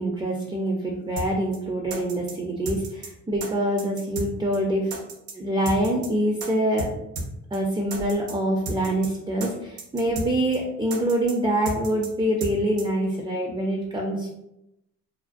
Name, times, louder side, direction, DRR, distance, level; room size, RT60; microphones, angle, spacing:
voice 1, 0.0-4.9 5.3-6.9 7.5-14.3, right 1 dB, 15° right, 0 dB, 0.4 m, -25 dB
sound 1, 1.2-1.3 1.5-1.6 1.9-2.3 2.6-3.1 3.4-3.5 3.8-4.3 4.5-4.6 4.9-5.3 5.6-6.1 6.4-6.5 6.8-6.9 7.1-7.3 7.5-7.6 7.9-8.3 8.6-9.1 9.4-9.5 9.8-10.3 10.5-10.6 10.9-11.3 11.6-12.1 12.4-12.5 12.8-12.9, right 2 dB, 80° right, 0.6 m, -33 dB
2.5 x 2.1 x 2.4 m, 0.85 s
cardioid pair, 90°, 30 cm